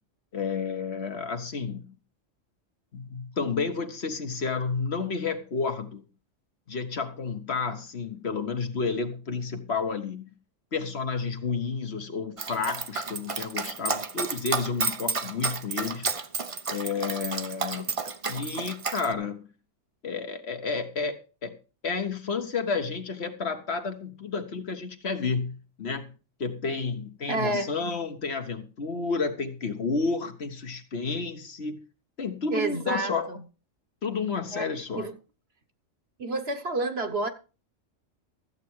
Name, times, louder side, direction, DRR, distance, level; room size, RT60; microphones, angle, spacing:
voice 1, 0.3-1.8 2.9-6.0 6.7-10.3 10.7-16.1 16.7-17.8 18.3-19.5 20.0-21.2 21.4-21.5 21.8-31.8 32.2-33.3 34.0-35.1, left 4 dB, 55° left, 1.5 m, -31 dB
Dog, 12.4-19.1, right 4 dB, 30° right, 0.7 m, -31 dB
voice 2, 27.3-27.7 32.5-33.4 34.5-34.7 35.0-35.1 36.2-37.3, right 2 dB, 55° right, 1.5 m, -29 dB
14.0 x 8.3 x 4.7 m
omnidirectional pair, 1.3 m